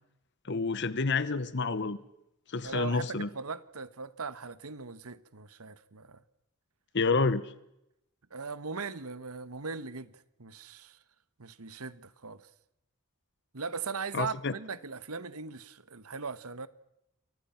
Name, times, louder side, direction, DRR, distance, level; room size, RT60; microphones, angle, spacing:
voice 1, 0.5-2.0 2.5-3.3 6.9-7.5 14.1-14.5, left 4 dB, 55° left, 1.0 m, -29 dB
voice 2, 2.6-6.2 8.3-10.1 10.4-11.0 11.4-12.4 13.5-16.7, right 5 dB, 85° right, 1.3 m, -39 dB
29.5 x 23.5 x 5.8 m
head